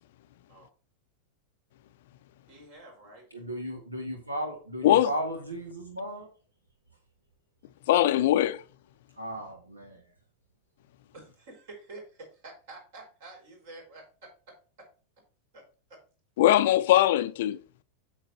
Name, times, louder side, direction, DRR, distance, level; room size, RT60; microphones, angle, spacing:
voice 1, 2.5-3.3 11.1-14.9 15.5-15.6 15.9-16.0, right 2 dB, 55° right, 4.9 m, -48 dB
voice 2, 3.3-6.3 9.2-10.0, equal, 80° right, 1.9 m, -35 dB
voice 3, 7.9-8.6 16.4-17.6, left 13 dB, 55° left, 0.5 m, -21 dB
8.8 x 7.2 x 2.9 m
figure-of-eight pair, 90°, 0 cm